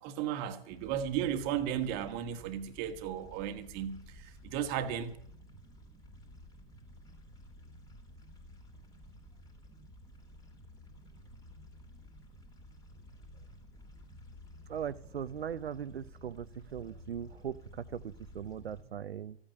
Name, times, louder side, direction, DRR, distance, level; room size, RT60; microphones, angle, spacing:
voice 1, 0.0-5.2, right 9 dB, 30° right, 1.6 m, -35 dB
sound 1, 0.7-18.8, left 1 dB, 10° left, 3.0 m, -53 dB
voice 2, 14.7-16.5 16.7-19.4, right 8 dB, 80° right, 0.8 m, -39 dB
15.0 x 8.9 x 9.7 m
hypercardioid pair, 130°, 30 cm